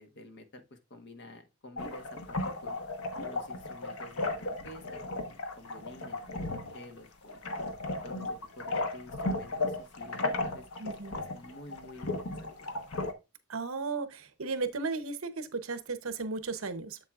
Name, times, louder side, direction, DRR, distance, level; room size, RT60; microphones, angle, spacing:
voice 1, 0.0-2.8 3.2-7.4 7.9-8.3 8.6-12.7, left 1 dB, 55° left, 1.3 m, -50 dB
sound 1, 1.8-13.1, left 2 dB, 80° left, 1.1 m, -35 dB
voice 2, 10.8-11.2 13.5-17.0, right 4 dB, 70° right, 0.8 m, -35 dB
7.5 x 7.3 x 2.4 m
head